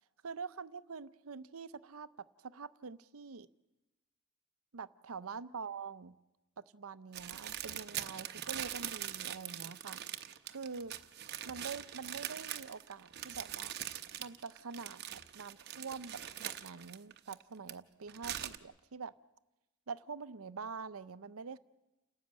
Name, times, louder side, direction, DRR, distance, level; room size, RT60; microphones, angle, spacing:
voice 1, 0.2-3.5 4.7-6.2 6.6-10.0 10.4-10.9 11.5-13.8 14.2-19.1 19.9-21.6, right 5 dB, 75° right, 15 dB, 0.7 m, -45 dB
sound 1, 7.1-17.7 18.1-18.6, right 11 dB, 50° right, 0.8 m, -42 dB
29.0 x 13.0 x 8.9 m, 1.0 s
head